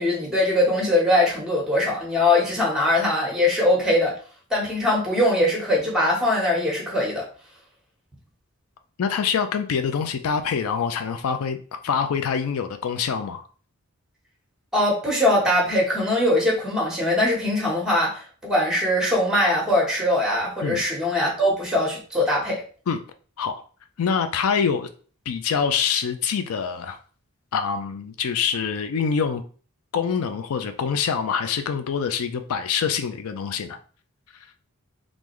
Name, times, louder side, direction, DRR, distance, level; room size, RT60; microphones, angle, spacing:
voice 1, 0.0-4.1 4.5-7.2 14.7-22.6, left 1 dB, 5° right, -2 dB, 1.1 m, -21 dB
voice 2, 9.0-11.6 11.8-13.4 20.6-20.8 22.9-23.0 23.4-23.6 24.0-24.9 25.3-27.0 27.5-29.4 29.9-33.8, left 6 dB, 85° left, 8 dB, 0.4 m, -25 dB
3.7 x 2.5 x 3.1 m, 0.41 s
head